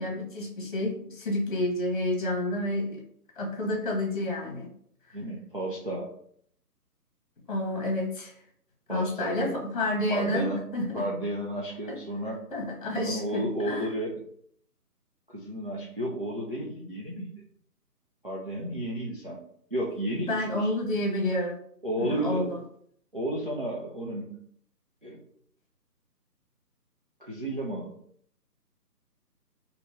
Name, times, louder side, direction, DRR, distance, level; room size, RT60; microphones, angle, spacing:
voice 1, 0.0-3.0 3.4-4.7 7.5-8.3 8.9-10.5 10.7-11.0 12.5-13.9 20.3-21.6 22.0-22.6, left 1 dB, 30° left, 0 dB, 1.2 m, -29 dB
voice 2, 5.1-6.1 8.9-9.5 10.1-10.7 10.9-12.4 13.0-14.1 15.3-17.3 18.2-19.4 19.7-20.7 21.8-22.5 23.1-24.4 25.0-25.2 27.2-27.9, right 1 dB, 35° right, -4 dB, 0.5 m, -32 dB
2.8 x 2.7 x 4.2 m, 0.64 s
figure-of-eight pair, 160°, 48 cm